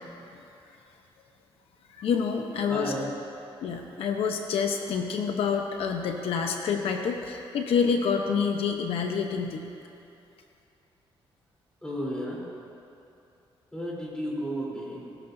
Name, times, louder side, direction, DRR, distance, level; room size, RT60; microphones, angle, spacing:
voice 1, 2.0-2.9 3.6-9.7, left 6 dB, 80° left, 3 dB, 0.9 m, -27 dB
voice 2, 2.7-3.1 11.8-12.4 13.7-15.1, equal, 10° left, -5 dB, 3.6 m, -33 dB
21.5 x 13.0 x 2.7 m, 2.7 s
cardioid pair, 125°, 10 cm